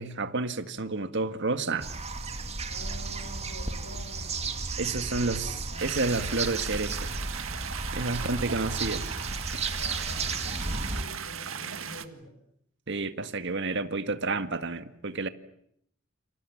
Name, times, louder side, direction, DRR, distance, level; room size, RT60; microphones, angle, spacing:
voice 1, 0.0-1.9 4.8-7.1 7.9-9.1 9.5-9.7 12.9-15.3, right 3 dB, 60° right, 1.9 m, -30 dB
sound 1, 1.8-11.0, right 3 dB, 30° right, 2.4 m, -34 dB
voice 2, 2.6-4.7 5.0-6.1 8.0-8.4 9.8-12.4, equal, 75° left, 7.5 m, -47 dB
sound 2, 5.8-12.1, right 8 dB, 85° right, 1.8 m, -37 dB
29.5 x 27.0 x 7.3 m
head